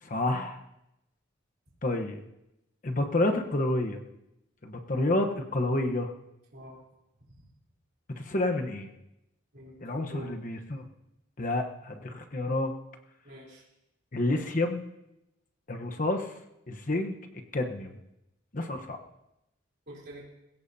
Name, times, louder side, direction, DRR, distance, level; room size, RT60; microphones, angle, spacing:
voice 1, 0.0-0.6 1.8-2.2 2.8-4.0 4.6-6.1 8.2-8.9 9.8-10.8 11.4-12.7 14.1-14.8 15.7-16.3 16.7-17.1 17.5-18.0 18.5-19.0, left 2 dB, 40° left, 5 dB, 1.0 m, -29 dB
voice 2, 9.5-10.4 13.2-13.6 19.9-20.2, right 1 dB, 55° right, -4 dB, 3.5 m, -46 dB
21.0 x 16.5 x 2.7 m, 0.88 s
head